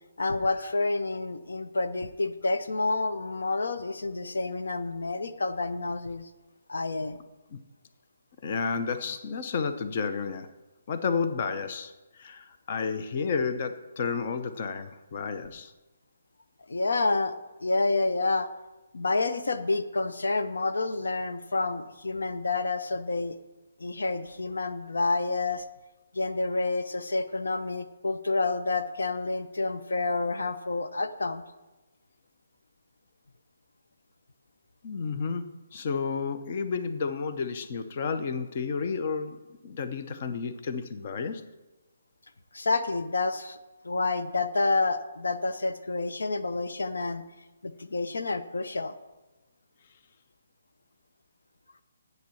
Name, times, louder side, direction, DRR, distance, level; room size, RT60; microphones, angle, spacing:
voice 1, 0.2-6.3 6.7-7.2 16.7-17.3 17.6-18.5 18.9-23.3 23.8-25.6 26.1-31.4 42.5-43.6 43.8-47.2 47.6-48.9, left 3 dB, 85° left, 10 dB, 0.8 m, -29 dB
voice 2, 8.4-10.5 10.9-15.7 34.8-41.4, left 5 dB, 40° left, 10 dB, 0.7 m, -31 dB
7.9 x 7.8 x 7.0 m, 1.1 s
hypercardioid pair, 160°, 0 cm